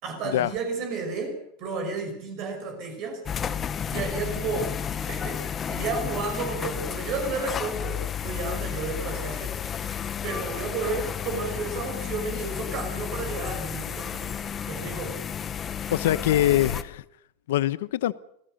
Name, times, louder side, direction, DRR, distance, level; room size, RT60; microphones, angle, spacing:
voice 1, 0.0-3.2 3.9-4.8 5.0-9.5 10.2-14.3 14.7-15.2, right 4 dB, 35° right, 5.7 m, -32 dB
sound 1, 3.3-16.8, left 8 dB, 15° left, 0.9 m, -32 dB
voice 2, 15.9-17.0 17.5-18.1, left 13 dB, 75° left, 0.9 m, -23 dB
25.5 x 17.0 x 6.6 m
supercardioid pair, 175°, 0 cm